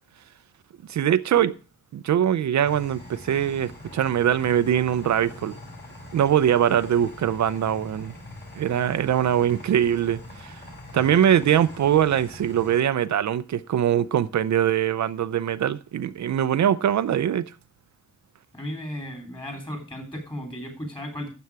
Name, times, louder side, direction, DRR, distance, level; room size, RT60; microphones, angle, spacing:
voice 1, 0.9-1.5 1.9-5.5 6.1-8.1 8.5-10.6 10.9-17.4, right 10 dB, 70° right, 0.6 m, -22 dB
sound 1, 2.6-12.8, left 2 dB, 35° left, 5.2 m, -43 dB
voice 2, 18.5-21.3, equal, 15° left, 3.1 m, -35 dB
12.5 x 7.8 x 4.6 m
wide cardioid pair, 180°, 30 cm